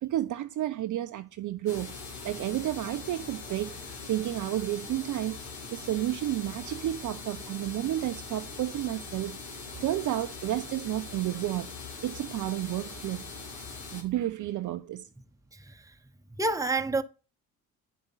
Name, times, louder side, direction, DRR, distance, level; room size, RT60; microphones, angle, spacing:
voice 1, 0.0-1.9 2.2-3.8 4.1-5.4 5.7-11.7 12.0-13.2 13.9-15.1, right 13 dB, 45° right, 0.6 m, -31 dB
sound 1, 1.7-14.0, left 4 dB, 70° left, 2.3 m, -42 dB
voice 2, 15.5-15.9 16.3-17.0, right 2 dB, 5° right, 0.8 m, -29 dB
10.0 x 5.1 x 4.0 m
hypercardioid pair, 50°, 45 cm